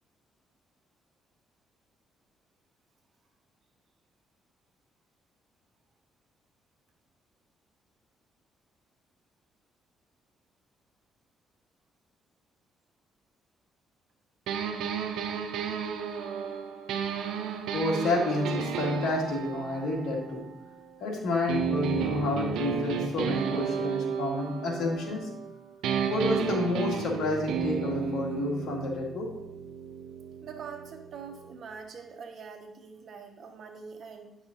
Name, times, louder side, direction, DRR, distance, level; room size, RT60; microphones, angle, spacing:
sound 1, 14.5-21.0 21.5-25.5 25.8-31.6, right 7 dB, 85° right, 0.7 m, -33 dB
voice 1, 17.7-20.4 21.0-25.3 26.1-29.3, left 2 dB, 75° left, -1 dB, 1.8 m, -29 dB
voice 2, 30.4-34.4, right 6 dB, 60° right, 4 dB, 1.2 m, -44 dB
9.8 x 6.1 x 2.7 m, 0.83 s
cardioid pair, 90°, 0 cm